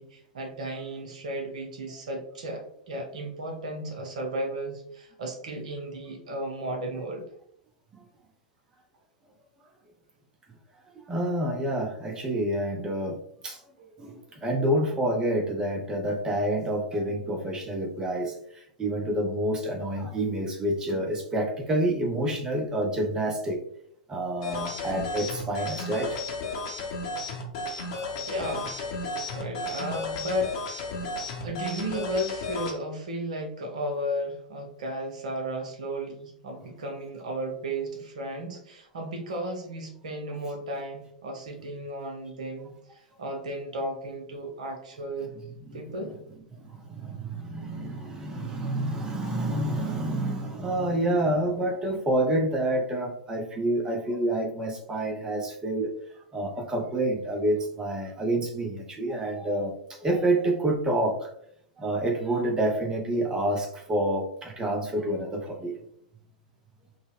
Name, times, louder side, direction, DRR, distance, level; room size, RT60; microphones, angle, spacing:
voice 1, 0.0-7.2 28.2-28.8 29.3-31.0 31.3-45.3 45.7-46.1, right 1 dB, 60° right, 3 dB, 0.7 m, -34 dB
voice 2, 11.0-13.6 14.0-23.6 24.1-26.2 45.6-46.1 46.5-55.9 56.3-61.3 61.8-65.8, right 1 dB, 15° right, 2 dB, 0.5 m, -28 dB
sound 1, 24.4-32.7, left 2 dB, 50° left, 0.7 m, -33 dB
3.9 x 2.0 x 2.3 m, 0.69 s
figure-of-eight pair, 95°, 4 cm